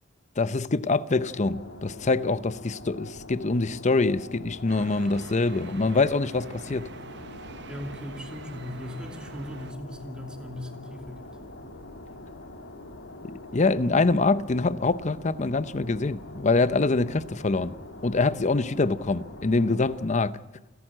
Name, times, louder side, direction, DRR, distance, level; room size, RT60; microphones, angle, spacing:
voice 1, 0.4-6.9 13.2-17.7 18.0-20.4, left 3 dB, 35° left, 0.7 m, -25 dB
sound 1, 1.1-20.1, left 2 dB, 75° left, 2.2 m, -44 dB
sound 2, 4.7-9.7, right 3 dB, 60° right, 1.2 m, -45 dB
voice 2, 7.7-11.3, left 1 dB, 5° right, 2.6 m, -38 dB
29.0 x 11.0 x 9.0 m
head